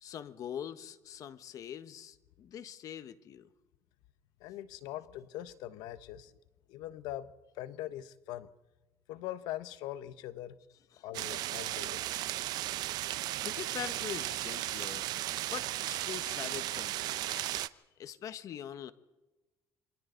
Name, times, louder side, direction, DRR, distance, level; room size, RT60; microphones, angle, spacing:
voice 1, 0.0-3.5 10.9-11.0 13.1-15.1 15.5-17.5 18.0-18.9, left 9 dB, 55° left, 12 dB, 1.4 m, -43 dB
voice 2, 4.4-6.3 6.7-7.3 7.6-8.5 9.1-10.6 11.0-12.0, left 13 dB, 85° left, 13 dB, 1.2 m, -42 dB
sound 1, 11.1-17.7, right 15 dB, 70° right, 0.7 m, -35 dB
27.5 x 25.0 x 4.0 m, 1.1 s
cardioid pair, 110°, 7 cm